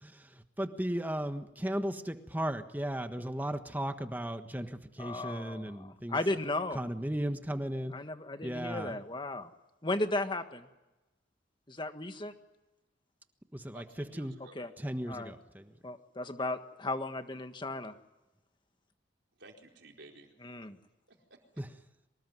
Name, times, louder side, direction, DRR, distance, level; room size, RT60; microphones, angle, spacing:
voice 1, 0.0-6.2 6.7-7.9 8.4-9.0 13.5-14.3 14.8-15.7 21.6-21.7, right 1 dB, 10° right, 8 dB, 1.4 m, -36 dB
voice 2, 5.0-6.8 7.9-9.5 9.8-10.6 11.7-12.3 14.5-14.7 15.1-15.3 15.8-17.9 20.4-20.8, left 2 dB, 25° left, 8 dB, 1.6 m, -35 dB
voice 3, 13.7-14.6 19.4-20.3 21.1-21.4, right 2 dB, 75° right, 2 dB, 4.4 m, -53 dB
24.5 x 20.0 x 9.4 m, 1.0 s
head